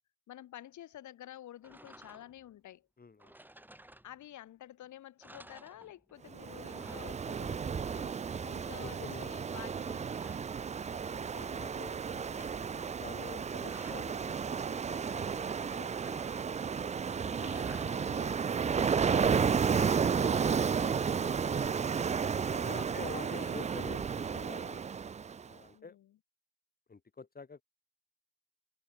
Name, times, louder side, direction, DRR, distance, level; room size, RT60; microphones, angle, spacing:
voice 1, 0.3-2.9 4.0-10.1 11.1-11.7 17.1-21.6 22.6-23.6 25.7-26.2, left 12 dB, 75° left, 2.5 m, -51 dB
sound 1, 1.6-2.5 3.2-4.5 4.8-4.9 5.2-6.3 6.5-7.8 9.5-11.3 11.7-12.6 13.3-14.2 16.0-16.8 17.3-18.3 18.8-20.6, right 1 dB, 5° right, 4.2 m, -56 dB
voice 2, 3.0-3.4 8.8-9.9 10.9-16.5 17.1-17.9 22.4-24.8 25.4-26.0 26.9-27.6, left 4 dB, 30° left, 4.3 m, -50 dB
Ocean, 6.3-25.5, right 6 dB, 25° right, 0.4 m, -32 dB
cardioid pair, 90°, 30 cm